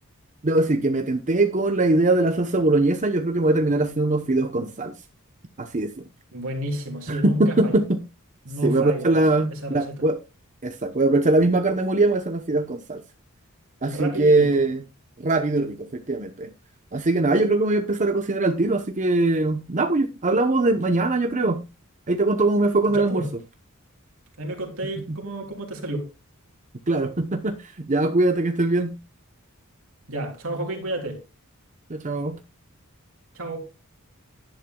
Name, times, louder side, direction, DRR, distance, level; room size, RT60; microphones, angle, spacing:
voice 1, 0.4-4.9 5.6-6.0 7.1-8.0 8.6-10.2 10.6-13.0 13.8-14.8 15.2-16.5 16.9-21.6 22.1-23.2 25.1-25.2 26.9-29.0 31.9-32.4, right 2 dB, 35° right, 0.8 m, -22 dB
voice 2, 6.3-7.8 8.4-9.2 9.5-9.9 13.8-14.6 22.9-23.3 24.4-26.1 30.1-31.2 33.3-33.7, right 1 dB, 70° right, 3.3 m, -31 dB
12.0 x 10.5 x 2.3 m
head